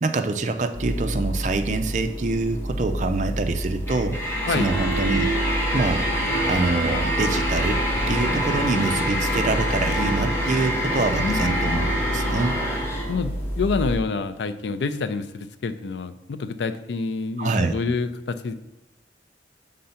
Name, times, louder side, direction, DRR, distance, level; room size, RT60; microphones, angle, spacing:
voice 1, 0.0-5.3 5.7-6.1 6.5-7.8 8.1-11.9 12.1-12.6 17.4-17.7, right 3 dB, 40° right, 7 dB, 0.5 m, -25 dB
sound 1, 0.7-14.0, equal, 10° left, 1.1 m, -25 dB
voice 2, 13.1-18.5, left 4 dB, 80° left, 11 dB, 0.4 m, -27 dB
5.6 x 3.8 x 5.6 m, 0.99 s
head